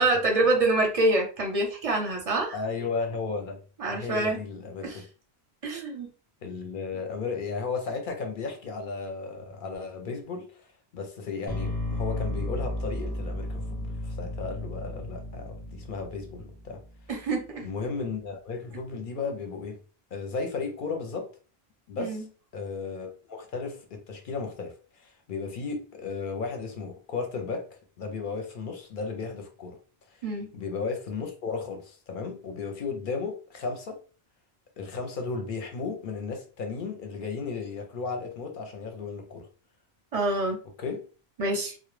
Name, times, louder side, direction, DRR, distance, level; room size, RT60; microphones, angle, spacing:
voice 1, 0.0-2.6 3.8-4.4 4.8-5.0 5.6-6.1 17.1-17.7 22.0-22.2 30.2-30.5 40.1-40.6 41.4-41.7, right 2 dB, 45° right, 0.6 m, -26 dB
voice 2, 2.5-3.6 3.9-4.9 6.4-10.6 10.9-16.8 17.6-19.8 20.1-21.3 21.9-22.3 22.5-27.7 28.0-29.8 30.5-34.0 34.8-39.5 40.8-41.0, left 4 dB, 60° left, 0.6 m, -34 dB
sound 1, 11.5-17.5, left 1 dB, 10° left, 0.6 m, -34 dB
2.1 x 2.0 x 3.1 m
omnidirectional pair, 1.1 m